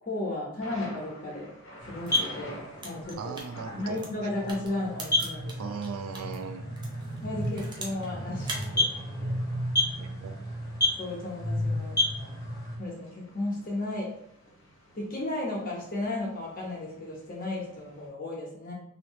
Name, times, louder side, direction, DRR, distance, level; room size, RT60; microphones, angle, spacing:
voice 1, 0.0-1.5 1.9-3.4 3.7-5.5 7.2-8.5 8.7-9.3 11.0-12.0 12.8-14.1 14.9-18.7, left 2 dB, 40° left, -4 dB, 1.0 m, -34 dB
Thunder, 0.6-18.1, equal, 65° left, 1.2 m, -51 dB
sound 1, 1.8-12.8, left 1 dB, 15° left, 0.9 m, -31 dB
sound 2, 2.0-6.3 6.8-8.1 8.4-8.7, right 2 dB, 20° right, 0.5 m, -41 dB
voice 2, 3.1-4.0 5.6-6.7 10.0-10.4, right 5 dB, 75° right, 7 dB, 0.4 m, -38 dB
2.8 x 2.7 x 3.1 m, 0.71 s
head